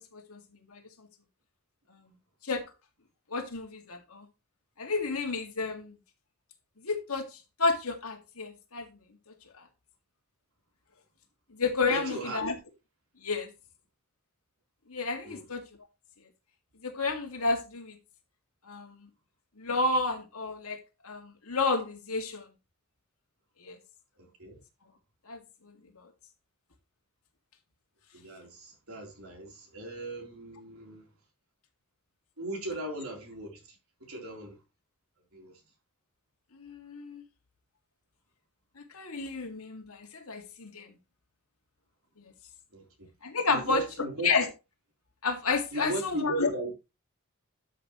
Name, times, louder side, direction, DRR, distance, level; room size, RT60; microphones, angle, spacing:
voice 1, 3.3-4.3 4.8-6.0 6.8-7.3 7.6-8.9 9.6-9.7 11.5-12.6 13.2-13.5 14.9-15.6 16.8-18.0 18.6-19.1 19.6-20.8 21.0-22.4 23.6-23.8 25.3-26.1 36.5-37.2 38.8-40.9 43.2-43.8 44.2-44.5 45.2-46.5, left 4 dB, 80° left, 2.2 m, -31 dB
voice 2, 11.9-12.4 15.2-15.5 24.2-24.6 28.1-31.0 32.4-34.6 35.3-35.5 42.7-43.1 43.5-44.3 45.7-46.7, right 2 dB, 75° right, 3.7 m, -37 dB
12.5 x 6.4 x 3.1 m
head